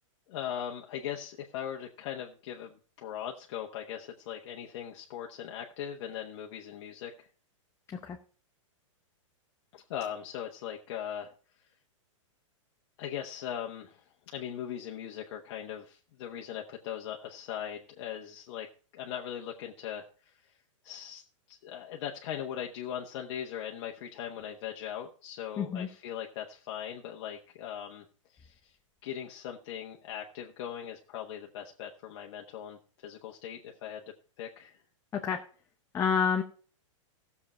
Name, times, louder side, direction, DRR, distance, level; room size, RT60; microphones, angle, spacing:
voice 1, 0.3-7.3 9.7-11.3 13.0-18.7 18.9-20.3 20.8-21.2 21.5-28.7 29.0-34.0 34.4-34.8, left 9 dB, 55° left, 1 dB, 1.3 m, -40 dB
voice 2, 25.6-25.9 35.1-35.4 35.9-36.4, left 7 dB, 15° left, 4 dB, 0.8 m, -28 dB
15.0 x 7.2 x 4.4 m, 0.39 s
hypercardioid pair, 145°, 17 cm